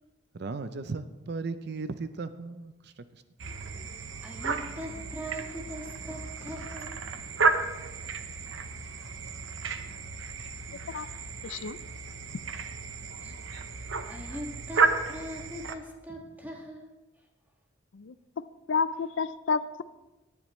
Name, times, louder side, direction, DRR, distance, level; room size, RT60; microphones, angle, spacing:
voice 1, 0.3-3.2, right 4 dB, 55° right, 11 dB, 0.5 m, -36 dB
sound 1, 3.4-15.8, right 4 dB, 75° right, 0.8 m, -32 dB
voice 2, 3.9-7.0 13.2-13.3 13.7-16.9, equal, 10° right, 0 dB, 1.9 m, -41 dB
voice 3, 11.4-11.8 17.9-18.1 18.7-19.8, left 5 dB, 70° left, 14 dB, 0.5 m, -30 dB
18.0 x 10.5 x 3.1 m, 1.1 s
head